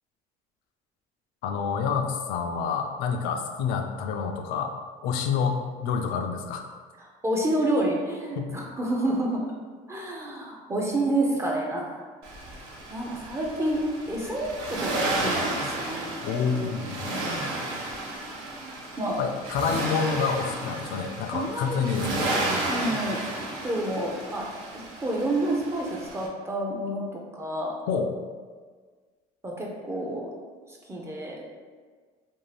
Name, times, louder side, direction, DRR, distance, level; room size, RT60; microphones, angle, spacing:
voice 1, 1.4-4.7 5.0-6.7 8.4-8.6 16.2-17.2 19.2-22.5 27.9-28.1, left 6 dB, 70° left, 5 dB, 0.4 m, -28 dB
voice 2, 7.0-9.5 9.9-12.1 12.9-16.0 17.1-17.5 19.0-19.2 21.3-21.8 22.7-23.2 23.6-24.5 24.7-27.7 29.4-30.3 30.7-31.4, right 1 dB, 15° right, -2 dB, 0.4 m, -29 dB
Accelerating revving vroom, 12.2-26.3, right 2 dB, 90° right, 0.6 m, -33 dB
2.6 x 2.4 x 3.2 m, 1.5 s
cardioid pair, 125°, 16 cm